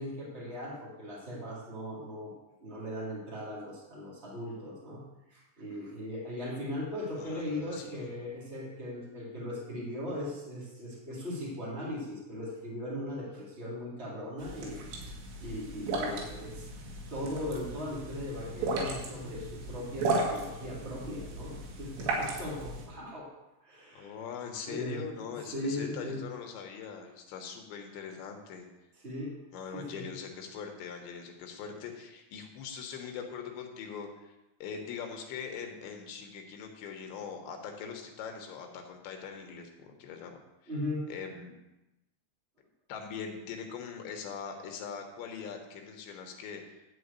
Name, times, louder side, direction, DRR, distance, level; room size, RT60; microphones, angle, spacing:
voice 1, 0.0-2.3 2.6-16.7 17.1-23.3 23.6-24.1 24.7-25.0 25.5-26.2 29.0-29.3 29.7-30.1 40.7-41.1, left 1 dB, 30° right, -7 dB, 1.2 m, -38 dB
voice 2, 7.2-8.1 23.9-28.7 29.5-34.3 34.6-40.4 40.6-40.7 41.1-41.5 42.9-46.8, left 6 dB, 75° left, 3 dB, 3.3 m, -42 dB
sound 1, 14.4-22.9, right 2 dB, 90° right, 4.5 m, -35 dB
12.5 x 4.7 x 8.1 m, 0.98 s
omnidirectional pair, 5.5 m